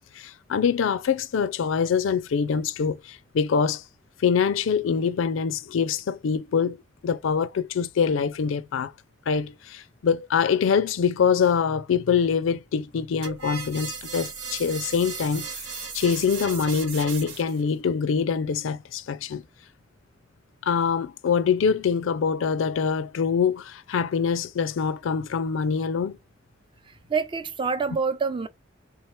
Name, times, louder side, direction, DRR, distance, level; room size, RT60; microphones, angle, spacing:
voice 1, 0.2-3.8 4.2-8.9 9.3-15.5 15.9-19.4 20.6-26.2, left 6 dB, 80° left, 0.4 m, -24 dB
sound 1, 13.2-17.6, right 5 dB, 70° right, 1.2 m, -36 dB
voice 2, 27.1-28.5, right 5 dB, 25° right, 0.4 m, -26 dB
3.6 x 2.9 x 3.1 m
head